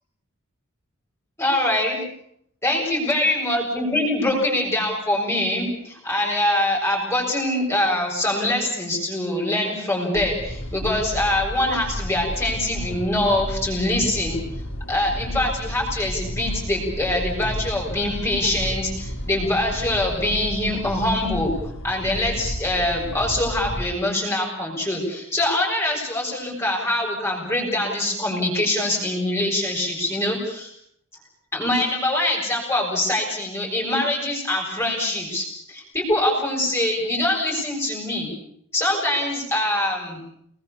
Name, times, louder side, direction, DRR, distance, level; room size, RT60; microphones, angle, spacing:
voice 1, 1.4-2.0 2.6-14.4 14.9-21.5 21.8-30.7 31.5-38.3 38.7-40.2, left 1 dB, 10° left, -2 dB, 7.6 m, -24 dB
sound 1, 10.1-23.9, equal, 65° left, 3.5 m, -32 dB
30.0 x 21.0 x 7.0 m, 0.71 s
head